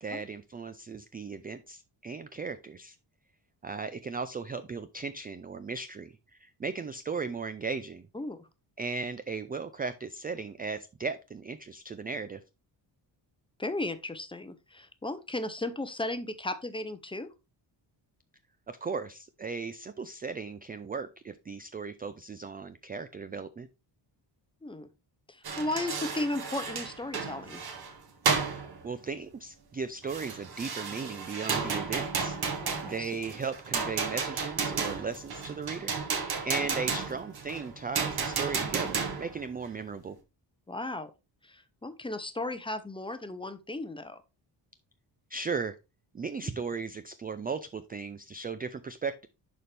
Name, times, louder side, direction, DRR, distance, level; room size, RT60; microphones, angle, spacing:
voice 1, 0.0-3.0 3.6-8.1 8.8-12.4 18.7-23.7 28.8-40.2 45.3-45.8 46.1-49.3, right 4 dB, 25° right, 0.3 m, -37 dB
voice 2, 8.1-8.5 13.6-17.3 24.6-24.9 25.3-27.6 32.6-33.1 40.7-41.1 41.4-44.2, left 2 dB, 10° left, 0.6 m, -35 dB
sound 1, 25.4-27.9 28.3-28.8 30.1-39.4, right 5 dB, 55° right, 1.7 m, -33 dB
11.0 x 4.2 x 3.3 m
wide cardioid pair, 145°, 45 cm